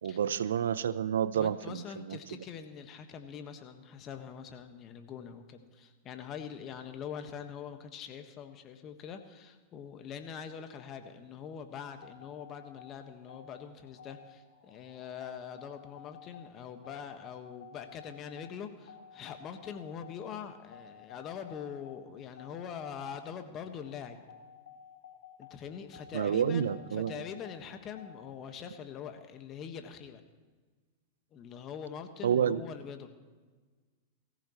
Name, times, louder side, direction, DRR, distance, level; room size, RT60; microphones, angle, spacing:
voice 1, 0.0-2.4 26.1-27.1 32.2-32.6, right 8 dB, 75° right, 16 dB, 0.6 m, -29 dB
voice 2, 1.3-24.2 25.4-30.2 31.3-33.1, left 7 dB, 35° left, 7 dB, 1.5 m, -43 dB
sound 1, 12.0-28.3, left 6 dB, 75° left, 3.9 m, -54 dB
22.0 x 15.0 x 3.1 m, 1.4 s
hypercardioid pair, 100°, 0 cm